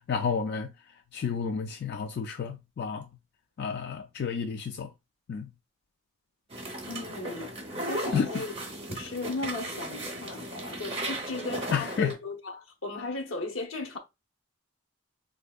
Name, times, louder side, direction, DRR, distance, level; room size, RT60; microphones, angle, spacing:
voice 1, 0.1-0.7 1.1-3.0 3.6-4.9 5.3-5.5 8.1-8.3 11.7-12.1, left 6 dB, 50° left, 0.3 m, -30 dB
sound 1, 6.5-12.1, right 1 dB, 30° right, 0.8 m, -36 dB
voice 2, 6.8-7.5 7.9-8.5 8.9-14.0, left 3 dB, 85° left, 0.8 m, -36 dB
3.5 x 2.7 x 2.3 m
head